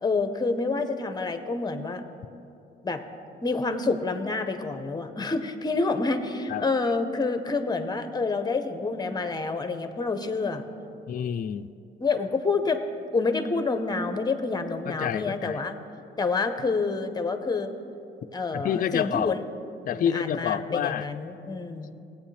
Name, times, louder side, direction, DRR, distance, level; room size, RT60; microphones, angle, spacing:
voice 1, 0.0-2.0 2.8-3.0 3.4-10.7 12.0-12.8 13.1-15.7 16.2-17.7 18.3-19.4 20.0-21.9, left 3 dB, 20° left, 8 dB, 0.9 m, -28 dB
voice 2, 11.1-11.7 14.9-15.6 18.5-19.4 19.9-21.1, left 9 dB, 45° left, 10 dB, 0.4 m, -28 dB
18.0 x 8.4 x 3.3 m, 2.7 s
cardioid pair, 90°, 20 cm